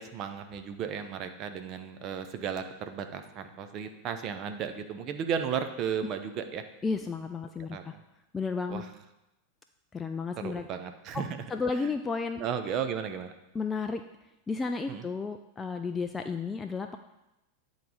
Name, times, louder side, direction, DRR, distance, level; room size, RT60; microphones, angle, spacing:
voice 1, 0.0-6.6 7.7-7.8 8.7-8.9 10.4-11.4 11.7-11.9 12.4-13.3 14.9-15.1, right 7 dB, 35° right, 8 dB, 0.7 m, -34 dB
voice 2, 6.8-7.9 8.3-8.8 9.9-10.7 11.1-11.2 11.5-12.5 13.5-14.0 14.5-17.0, left 4 dB, 15° left, 6 dB, 0.3 m, -32 dB
9.2 x 4.1 x 4.9 m, 0.94 s
figure-of-eight pair, 90°, 0 cm